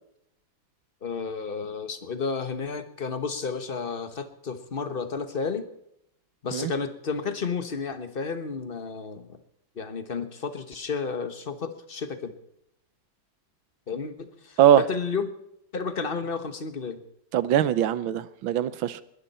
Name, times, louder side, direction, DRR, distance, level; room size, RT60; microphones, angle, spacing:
voice 1, 1.0-5.7 6.4-9.4 9.7-12.4 13.9-15.3 15.7-17.0, left 5 dB, 30° left, 10 dB, 1.3 m, -32 dB
voice 2, 17.3-19.0, right 11 dB, 80° right, 16 dB, 1.6 m, -21 dB
21.0 x 12.5 x 4.3 m, 0.78 s
omnidirectional pair, 2.2 m